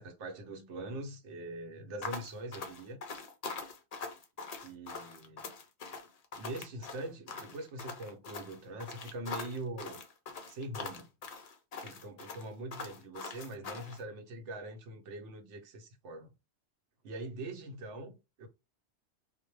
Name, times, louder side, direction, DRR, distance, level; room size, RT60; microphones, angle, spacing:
voice 1, 0.0-3.0 4.6-5.4 6.4-10.0 10.5-11.1 11.8-16.3 17.0-18.5, right 2 dB, 80° right, 0.9 m, -43 dB
sound 1, 2.0-14.0, left 4 dB, 60° left, 0.4 m, -43 dB
2.1 x 2.0 x 3.0 m
omnidirectional pair, 1.2 m